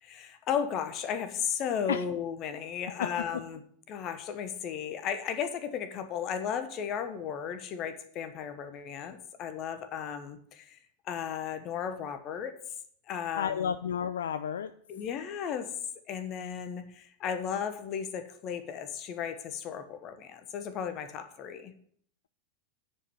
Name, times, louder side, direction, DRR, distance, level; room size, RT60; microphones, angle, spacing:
voice 1, 0.0-3.6 3.9-10.8 11.0-12.5 13.1-13.7 14.9-15.7 16.1-21.7, left 8 dB, 35° left, 9 dB, 1.2 m, -35 dB
voice 2, 13.3-14.7, left 8 dB, 65° left, 12 dB, 0.4 m, -31 dB
9.9 x 5.2 x 7.0 m, 0.62 s
figure-of-eight pair, 90°, 0 cm